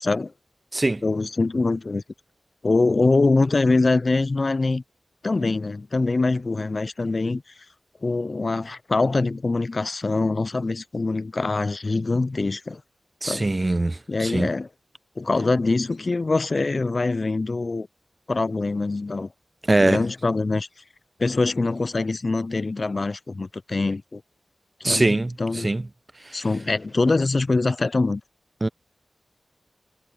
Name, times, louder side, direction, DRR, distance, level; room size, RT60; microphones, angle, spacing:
voice 1, 0.0-0.3 1.0-2.0 2.6-4.8 5.2-7.4 8.0-12.8 13.2-13.5 14.1-14.7 15.2-17.9 18.3-19.3 19.8-20.7 21.2-24.2 24.8-25.7 26.3-28.2, left 3 dB, 50° left, 0.4 m, -23 dB
voice 2, 0.7-1.0 13.2-14.5 19.7-20.0 24.8-25.8 28.6-28.7, right 2 dB, 35° right, 0.7 m, -22 dB
cardioid pair, 45°, 0 cm